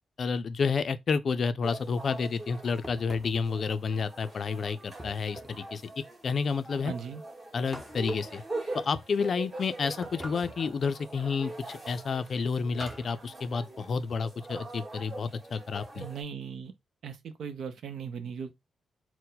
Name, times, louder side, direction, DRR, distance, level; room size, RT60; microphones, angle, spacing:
voice 1, 0.2-5.8 6.2-6.9 7.5-8.4 8.8-16.1, left 5 dB, 45° left, 0.4 m, -30 dB
sound 1, 1.6-16.2, right 2 dB, 25° right, 1.3 m, -43 dB
sound 2, 2.8-3.5 5.0-5.7 7.7-8.4 10.0-10.7 12.8-13.2, right 1 dB, 10° right, 0.7 m, -44 dB
voice 2, 6.8-7.2 15.9-16.7 17.0-18.5, right 7 dB, 70° right, 0.7 m, -38 dB
4.4 x 2.1 x 3.9 m
wide cardioid pair, 150°, 0 cm